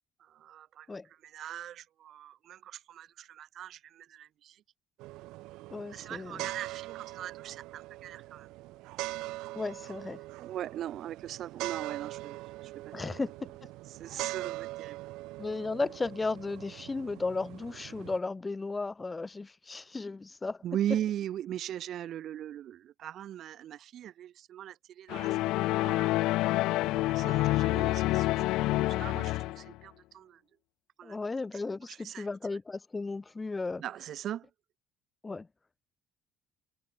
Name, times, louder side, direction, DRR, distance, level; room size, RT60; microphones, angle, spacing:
voice 1, 0.2-4.6 5.9-8.5 10.4-13.0 13.9-15.0 20.6-26.1 26.8-30.4 31.0-31.2 31.8-32.3 33.8-34.5, right 11 dB, 45° right, 1.6 m, -40 dB
sound 1, 5.0-18.2, right 19 dB, 75° right, 3.6 m, -42 dB
voice 2, 5.7-6.4 9.5-10.2 12.9-13.3 15.4-20.6 27.2-27.4 31.0-33.8 35.2-35.5, left 3 dB, 15° left, 3.2 m, -35 dB
sound 2, 25.1-29.7, left 18 dB, 65° left, 0.3 m, -28 dB
cardioid pair, 175°, 0 cm